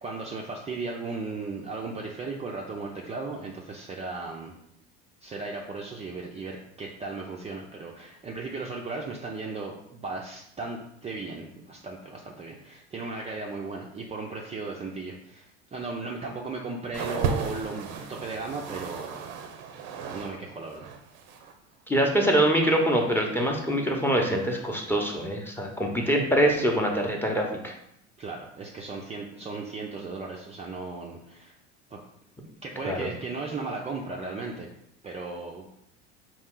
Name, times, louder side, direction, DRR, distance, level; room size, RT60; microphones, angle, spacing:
voice 1, 0.0-4.5 5.2-19.2 20.1-20.9 28.2-31.5 31.9-32.0 32.6-34.7 35.0-35.7, right 3 dB, 20° right, -1 dB, 0.5 m, -36 dB
sound 1, 16.9-20.4 20.6-21.5 22.3-22.4, right 5 dB, 65° right, 0.7 m, -34 dB
voice 2, 21.9-27.7 32.8-33.1, right 1 dB, 5° left, 1 dB, 0.8 m, -24 dB
4.3 x 2.4 x 3.7 m, 0.76 s
hypercardioid pair, 80°, 34 cm